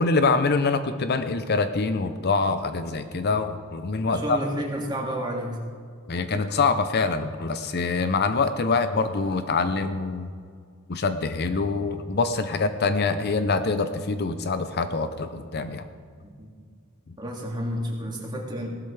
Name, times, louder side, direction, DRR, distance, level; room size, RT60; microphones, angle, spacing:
voice 1, 0.0-4.4 6.1-10.3 10.9-15.8 17.1-17.2, left 4 dB, 50° left, 10 dB, 0.6 m, -25 dB
voice 2, 4.1-5.6 16.2-16.5 17.2-18.7, equal, 20° right, -1 dB, 2.3 m, -31 dB
17.0 x 12.5 x 3.4 m, 2.1 s
head